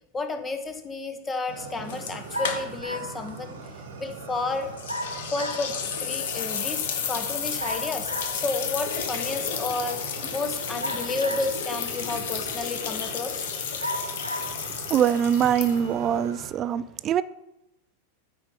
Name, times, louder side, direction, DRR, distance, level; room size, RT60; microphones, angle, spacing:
voice 1, 0.1-3.6 4.0-4.7 5.3-13.5, left 3 dB, 15° left, 7 dB, 1.0 m, -31 dB
Fire, 1.5-16.5, right 4 dB, 60° right, 1.2 m, -41 dB
sound 1, 1.9-3.0 3.3-3.4 4.8-16.1, left 7 dB, 55° left, 1.0 m, -32 dB
sound 2, 2.3-3.2 4.9-5.7 7.6-8.4 10.8-11.7 12.4-12.5 13.8-14.5, equal, 85° right, 1.0 m, -33 dB
voice 2, 14.9-17.2, right 9 dB, 30° right, 16 dB, 0.4 m, -23 dB
8.6 x 5.3 x 5.7 m, 0.87 s
figure-of-eight pair, 90°, 0 cm